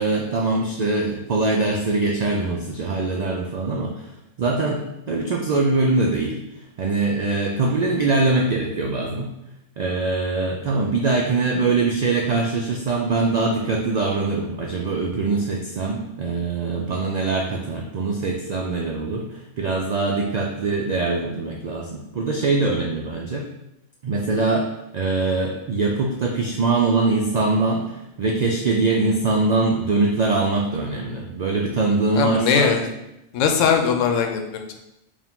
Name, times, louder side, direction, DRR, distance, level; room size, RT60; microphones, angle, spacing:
voice 1, 0.0-4.1 4.4-6.4 6.8-9.3 9.8-23.4 24.0-24.7 24.9-32.8, right 3 dB, 85° right, 0 dB, 0.3 m, -23 dB
voice 2, 32.1-32.9 33.3-34.8, left 6 dB, 90° left, 5 dB, 0.9 m, -20 dB
4.7 x 2.5 x 3.6 m, 0.89 s
omnidirectional pair, 1.3 m